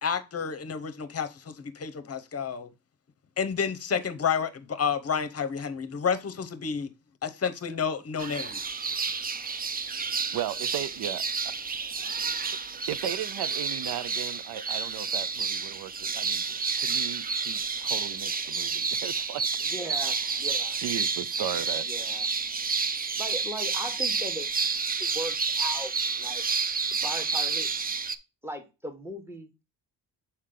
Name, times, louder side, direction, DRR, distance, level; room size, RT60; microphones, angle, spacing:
voice 1, 0.0-2.7 3.4-6.9 7.2-8.6, left 6 dB, 35° left, 0.8 m, -30 dB
sound 1, 8.2-28.2, right 5 dB, 20° right, 0.4 m, -30 dB
voice 2, 10.3-11.5 12.0-12.1 12.9-16.4 16.8-19.5 20.7-21.9, right 11 dB, 65° right, 0.6 m, -36 dB
voice 3, 19.7-20.8 21.9-22.3 23.2-24.5 25.0-25.9 26.2-26.4 26.9-27.7 28.4-29.6, equal, 5° right, 1.2 m, -38 dB
6.4 x 4.4 x 3.8 m
cardioid pair, 95°, 42 cm